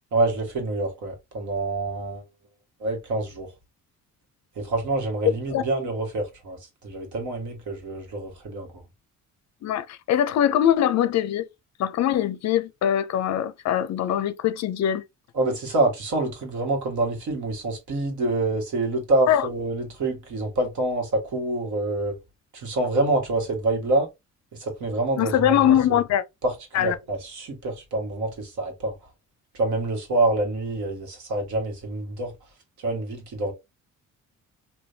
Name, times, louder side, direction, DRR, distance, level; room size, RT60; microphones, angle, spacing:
voice 1, 0.1-2.2 2.8-3.5 4.6-8.7 15.4-22.1 22.5-24.1 24.6-26.0 26.4-28.9 29.5-32.3 32.8-33.5, right 2 dB, 65° right, 1.6 m, -26 dB
voice 2, 9.6-11.5 11.8-15.0 19.3-19.5 25.2-26.2 26.7-26.9, left 10 dB, 60° left, 0.5 m, -22 dB
3.4 x 2.7 x 2.7 m
cardioid pair, 130°, 31 cm